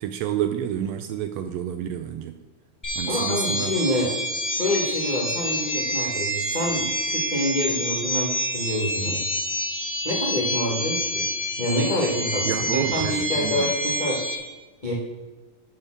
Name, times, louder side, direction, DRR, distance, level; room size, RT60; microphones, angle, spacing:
voice 1, 0.0-2.3 3.0-3.8 12.4-13.7, right 10 dB, 80° right, 8 dB, 1.6 m, -29 dB
sound 1, 2.8-14.4, equal, 5° left, 1.7 m, -27 dB
voice 2, 3.1-4.1 4.5-9.2 10.0-11.2 11.6-14.2 14.8-14.9, equal, 65° left, -3 dB, 0.4 m, -27 dB
8.7 x 4.2 x 7.1 m, 1.2 s
omnidirectional pair, 3.4 m